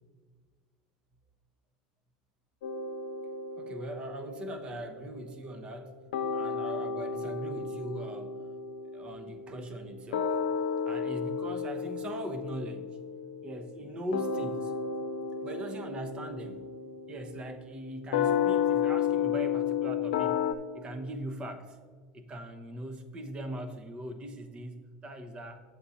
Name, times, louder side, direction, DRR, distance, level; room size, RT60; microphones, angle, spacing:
sound 1, 2.6-5.9 6.1-20.5, left 7 dB, 85° left, 0.6 m, -33 dB
voice 1, 3.6-6.0 6.3-8.4 8.9-10.4 10.8-13.0 13.4-14.7 15.4-16.6 17.1-20.4 20.7-21.8 22.1-25.6, right 1 dB, 30° right, 9 dB, 1.0 m, -40 dB
8.3 x 7.1 x 4.1 m, 1.6 s
supercardioid pair, 105°, 3 cm